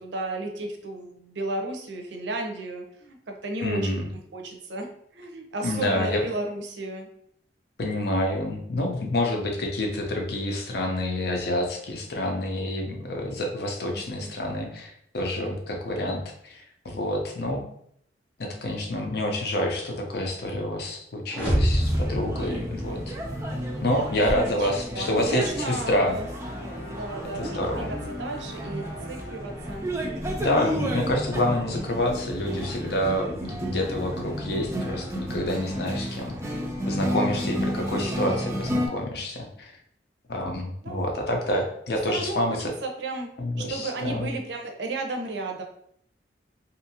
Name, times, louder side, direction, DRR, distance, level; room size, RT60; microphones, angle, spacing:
voice 1, 0.0-4.0 4.3-4.9 5.1-7.1 14.2-14.3 23.9-24.1 24.6-26.3 26.9-29.9 40.8-41.0 41.9-43.3 43.6-45.6, right 2 dB, 80° right, 3 dB, 0.5 m, -33 dB
voice 2, 3.6-4.1 5.6-6.2 7.8-17.6 18.4-23.0 23.8-26.2 27.3-27.9 30.4-36.6 36.9-39.7 40.3-42.7 43.4-44.3, left 1 dB, 60° left, 1 dB, 0.6 m, -28 dB
sound 1, 21.3-23.4, equal, 10° left, 0.8 m, -26 dB
sound 2, 21.7-38.9, equal, 15° right, 0.4 m, -31 dB
sound 3, 25.8-32.0, left 2 dB, 85° left, 0.9 m, -46 dB
2.7 x 2.5 x 2.7 m, 0.69 s
head